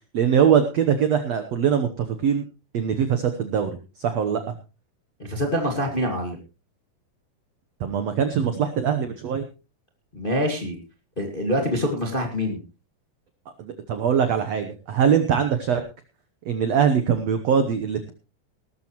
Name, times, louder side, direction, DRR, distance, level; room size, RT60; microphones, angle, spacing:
voice 1, 0.1-2.4 2.7-4.5 7.8-9.4 13.6-15.8 16.4-18.1, right 7 dB, 75° right, 8 dB, 1.5 m, -22 dB
voice 2, 5.2-6.4 10.1-10.8 11.2-12.6, equal, 25° left, 3 dB, 1.2 m, -25 dB
18.5 x 13.0 x 3.1 m, 0.30 s
omnidirectional pair, 4.5 m